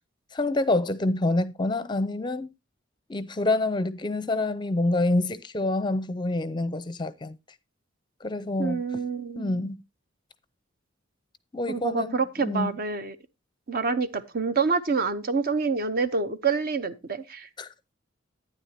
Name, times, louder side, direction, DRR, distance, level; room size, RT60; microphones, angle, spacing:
voice 1, 0.3-2.5 3.1-7.4 8.2-8.8 9.4-9.8 11.5-12.8 17.6-17.7, left 2 dB, 20° left, 0.5 m, -27 dB
voice 2, 8.6-9.7 11.7-13.2 13.7-17.5, right 4 dB, 50° right, 0.8 m, -27 dB
11.5 x 9.6 x 2.8 m
head